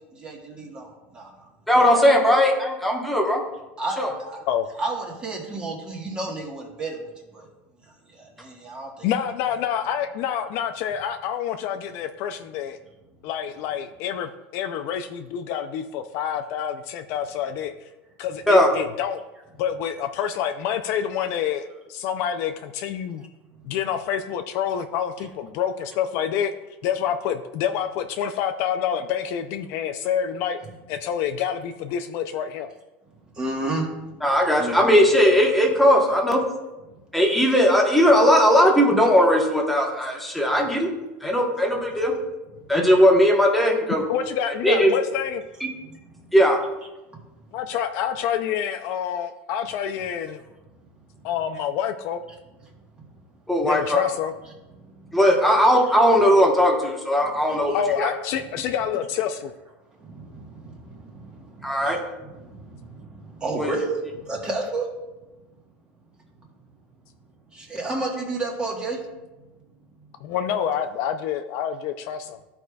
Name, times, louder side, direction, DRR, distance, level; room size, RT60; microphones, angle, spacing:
voice 1, 0.1-1.3 3.8-4.4 4.8-7.0 7.3-7.4 8.1-9.1 33.4-33.9 34.6-34.9 45.9-46.3 54.8-55.1 57.2-57.8 60.0-64.9 67.5-69.0, right 2 dB, 15° right, 0 dB, 1.3 m, -32 dB
voice 2, 1.7-3.4 4.0-4.1 18.5-18.7 34.2-36.4 37.1-40.9 41.2-42.1 42.7-44.0 44.6-44.9 46.3-46.6 53.5-54.0 55.1-58.1 61.6-62.0 63.6-63.7, equal, ahead, -1 dB, 1.0 m, -18 dB
voice 3, 9.0-12.8 13.2-17.7 18.2-19.2 19.6-23.2 23.6-26.5 26.8-30.6 30.9-32.7 44.1-45.4 47.5-50.4 51.2-52.2 53.6-54.3 57.7-59.5 70.2-72.4, left 9 dB, 45° left, 8 dB, 0.4 m, -27 dB
13.5 x 4.8 x 2.3 m, 1.1 s
supercardioid pair, 165°, 6 cm